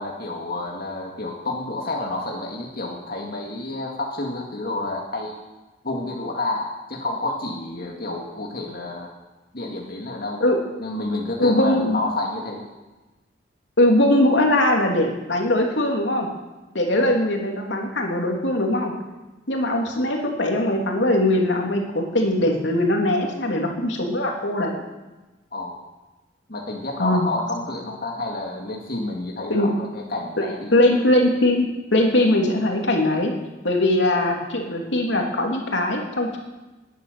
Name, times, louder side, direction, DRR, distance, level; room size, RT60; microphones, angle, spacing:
voice 1, 0.0-5.4 5.8-9.1 9.5-10.4 10.8-12.6 16.9-17.1 25.5-25.7 26.5-30.7, left 2 dB, 55° left, -1 dB, 2.2 m, -29 dB
voice 2, 11.4-12.0 13.8-16.3 16.7-18.9 19.5-24.8 27.0-27.3 29.5-29.7 30.4-33.3 33.6-36.4, left 1 dB, 85° left, 1 dB, 3.0 m, -21 dB
20.0 x 10.5 x 6.8 m, 1.1 s
head